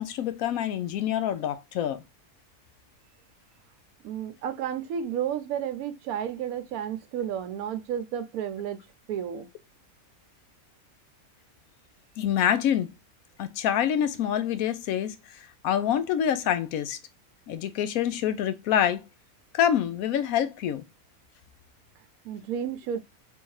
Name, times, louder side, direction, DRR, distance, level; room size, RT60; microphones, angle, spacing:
voice 1, 0.0-2.0 12.2-12.9 13.4-15.4 15.6-17.0 17.5-19.0 19.5-20.8, left 9 dB, 75° left, 1.0 m, -26 dB
voice 2, 4.0-9.5 22.0-23.0, right 9 dB, 75° right, 1.1 m, -32 dB
3.5 x 2.7 x 4.7 m
omnidirectional pair, 1.5 m